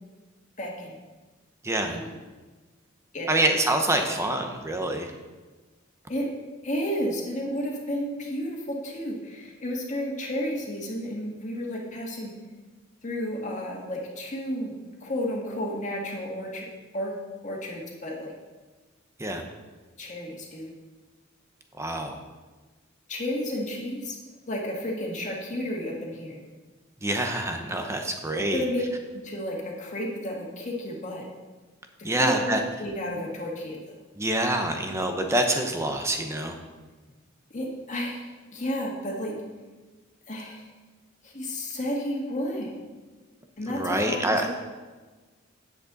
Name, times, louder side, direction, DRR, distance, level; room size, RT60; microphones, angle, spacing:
voice 1, 0.6-1.0 1.9-2.0 3.1-3.3 6.1-6.3 6.6-12.4 13.0-14.8 15.0-16.7 16.9-17.2 17.4-18.3 20.0-20.7 23.1-24.2 24.5-26.4 28.5-28.9 29.1-31.2 32.1-33.8 37.5-39.3 40.3-40.6 41.2-42.7 43.6-44.5, equal, 40° left, -2 dB, 1.9 m, -32 dB
voice 2, 3.3-5.1 19.2-19.4 21.8-22.2 27.0-28.6 32.0-32.6 34.2-36.6 43.7-44.5, right 1 dB, 15° right, 4 dB, 0.8 m, -26 dB
9.5 x 8.1 x 4.1 m, 1.3 s
head